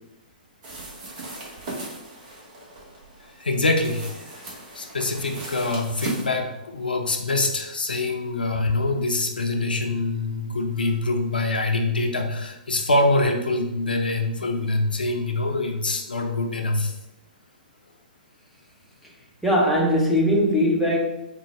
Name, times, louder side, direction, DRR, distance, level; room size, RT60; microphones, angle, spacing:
sound 1, 0.6-6.2, right 2 dB, 40° right, 1.1 m, -37 dB
voice 1, 3.4-4.4 4.7-17.0, left 2 dB, 75° left, 0.6 m, -24 dB
voice 2, 19.4-21.0, equal, ahead, 0.7 m, -20 dB
3.8 x 2.2 x 4.3 m
figure-of-eight pair, 115°, 5 cm